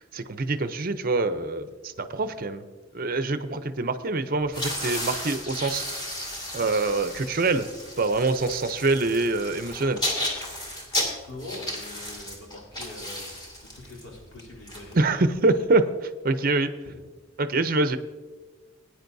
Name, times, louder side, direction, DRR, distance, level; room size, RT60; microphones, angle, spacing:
voice 1, 0.0-2.6 2.9-5.8 6.5-7.7 8.0-10.0 14.9-16.7 17.4-18.0, right 3 dB, 45° right, 10 dB, 0.6 m, -25 dB
sound 1, 4.4-15.5, left 1 dB, 20° left, 2.2 m, -34 dB
voice 2, 11.3-15.3 16.8-17.1, left 2 dB, 90° left, -4 dB, 3.3 m, -43 dB
19.0 x 9.7 x 2.7 m, 1.4 s
head